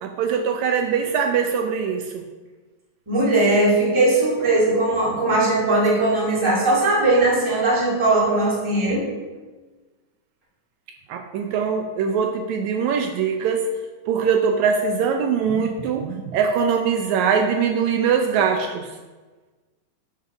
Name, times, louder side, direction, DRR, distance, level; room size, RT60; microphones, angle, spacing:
voice 1, 0.0-2.2 11.1-13.6 14.1-18.9, right 6 dB, 75° right, 4 dB, 1.9 m, -22 dB
voice 2, 3.1-9.0, right 2 dB, 10° right, -5 dB, 1.8 m, -19 dB
6.8 x 6.7 x 5.9 m, 1.3 s
omnidirectional pair, 3.5 m